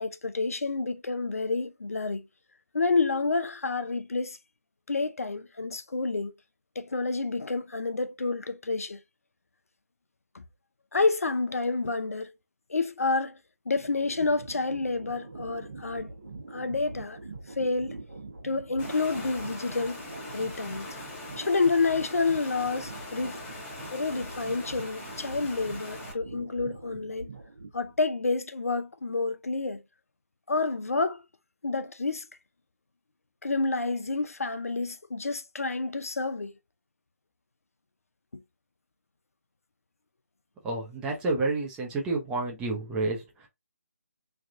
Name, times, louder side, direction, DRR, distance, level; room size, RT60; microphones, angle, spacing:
voice 1, 0.0-2.3 2.7-4.4 4.9-6.3 6.8-9.0 10.3-10.4 10.9-12.3 12.7-13.4 13.7-16.1 16.5-17.2 17.6-18.0 18.4-20.0 20.3-20.9 21.4-23.4 23.9-27.3 27.7-29.8 30.5-31.2 31.6-32.3 33.4-36.5 38.3-38.4, left 3 dB, 75° left, 0.5 m, -29 dB
sound 1, 13.8-28.0, right 3 dB, 60° right, 1.1 m, -43 dB
Water, 18.8-26.1, left 2 dB, 15° left, 0.9 m, -42 dB
voice 2, 40.6-43.5, right 3 dB, 10° right, 0.7 m, -30 dB
3.3 x 2.4 x 2.6 m
figure-of-eight pair, 150°, 8 cm